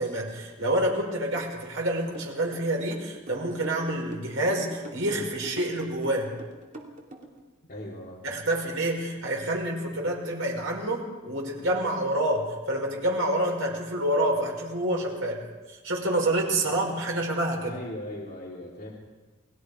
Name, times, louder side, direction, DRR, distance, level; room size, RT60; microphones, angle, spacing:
voice 1, 0.0-6.3 8.2-15.4 15.7-17.8, right 1 dB, 70° right, 0 dB, 5.4 m, -28 dB
sound 1, 2.1-7.4, right 1 dB, 35° right, 2.8 m, -43 dB
voice 2, 7.7-8.3 17.7-18.9, left 1 dB, 40° left, -7 dB, 4.2 m, -38 dB
29.5 x 19.5 x 5.0 m, 1.3 s
head